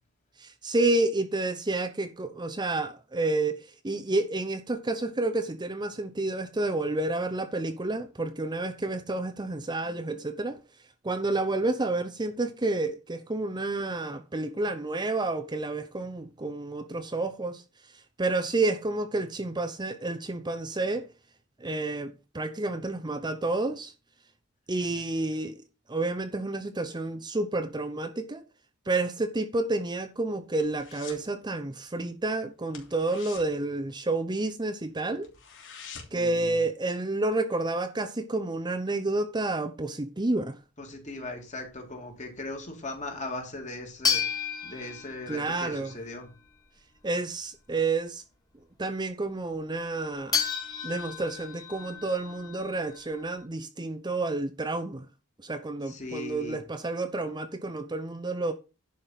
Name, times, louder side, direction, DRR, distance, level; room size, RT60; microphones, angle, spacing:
voice 1, 0.4-3.6 3.8-10.6 11.0-17.6 18.2-21.1 21.6-23.9 24.7-25.6 25.9-28.4 28.9-35.3 36.1-40.5 45.3-45.9 47.0-48.2 48.8-50.4 50.8-55.1 55.4-58.5, right 2 dB, 20° right, 0.7 m, -30 dB
sound 1, 29.8-31.3 31.6-31.9 32.2-32.3 32.7-34.5 34.9-35.0 35.2-36.3 36.7-36.8, left 6 dB, 60° left, 3.0 m, -47 dB
voice 2, 36.1-36.6 40.8-44.2 44.6-46.3 55.9-56.6, left 2 dB, 35° left, 2.8 m, -38 dB
sound 2, 44.0-46.0 50.3-53.4, left 6 dB, 20° left, 2.2 m, -32 dB
11.0 x 5.4 x 5.9 m
head